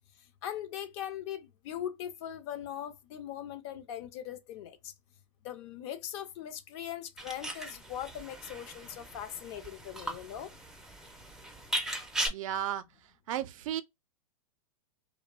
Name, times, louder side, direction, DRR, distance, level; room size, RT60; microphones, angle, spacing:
voice 1, 0.4-4.9 5.4-10.5, left 10 dB, 50° left, 0.6 m, -40 dB
sound 1, 7.2-12.3, right 1 dB, 5° right, 0.4 m, -38 dB
voice 2, 12.3-12.8 13.3-13.8, right 11 dB, 65° right, 0.4 m, -33 dB
2.6 x 2.1 x 2.4 m
hypercardioid pair, 125°, 18 cm